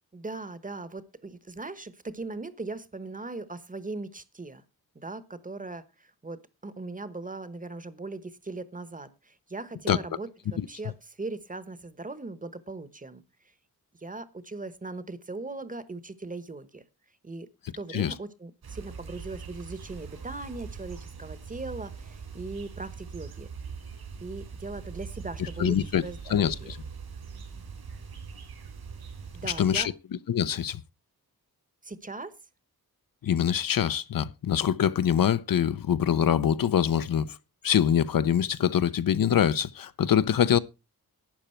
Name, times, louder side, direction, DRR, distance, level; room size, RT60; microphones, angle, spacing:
voice 1, 0.1-4.6 4.9-13.2 14.0-16.8 17.2-17.5 17.8-23.5 24.2-25.8 26.0-26.7 29.3-29.9 31.8-32.3, right 3 dB, 20° right, 1.0 m, -39 dB
sound 1, 18.6-29.8, right 5 dB, 80° right, 4.5 m, -42 dB
voice 2, 25.6-26.0 26.3-26.8 29.4-29.9 30.3-30.8 33.2-37.4 37.6-40.6, left 9 dB, 65° left, 0.7 m, -24 dB
12.0 x 9.0 x 4.4 m
wide cardioid pair, 135°, 37 cm